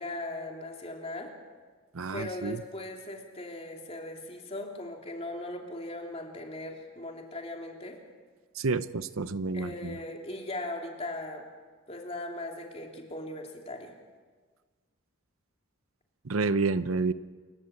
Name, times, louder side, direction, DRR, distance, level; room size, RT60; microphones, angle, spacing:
voice 1, 0.0-1.3 2.1-8.0 9.5-11.4 11.9-13.9, left 1 dB, 30° left, 1 dB, 3.1 m, -39 dB
voice 2, 1.9-2.6 8.6-10.0 16.2-17.1, right 4 dB, 75° right, 14 dB, 0.7 m, -29 dB
29.0 x 14.5 x 8.4 m, 1.4 s
head